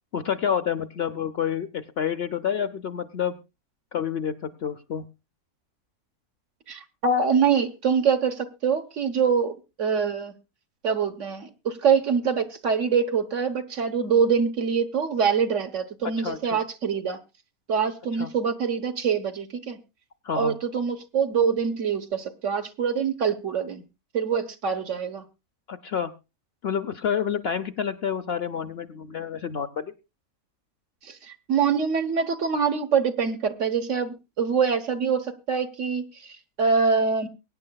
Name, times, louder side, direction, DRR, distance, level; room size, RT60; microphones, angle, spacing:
voice 1, 0.1-3.4 3.9-5.1 16.2-16.6 18.2-18.3 20.2-20.6 25.7-26.1 26.6-29.9, left 8 dB, 55° left, 0.9 m, -28 dB
voice 2, 6.7-10.3 10.8-17.2 17.7-19.8 20.3-23.8 24.1-25.2 31.0-37.3, right 6 dB, 60° right, 1.5 m, -25 dB
23.0 x 9.6 x 2.3 m
omnidirectional pair, 1.5 m